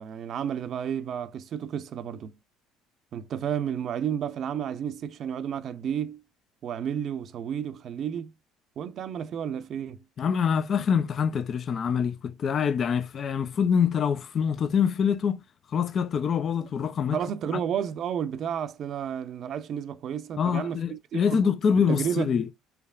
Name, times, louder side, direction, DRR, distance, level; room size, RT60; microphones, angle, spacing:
voice 1, 0.0-2.3 3.1-6.2 6.6-8.3 8.8-10.0 16.6-16.7 17.1-21.4 21.8-22.3, right 8 dB, 55° right, 0.5 m, -32 dB
voice 2, 10.2-15.4 15.7-17.2 20.4-22.5, left 7 dB, 50° left, 0.4 m, -25 dB
4.5 x 3.3 x 2.4 m
hypercardioid pair, 65°, 0 cm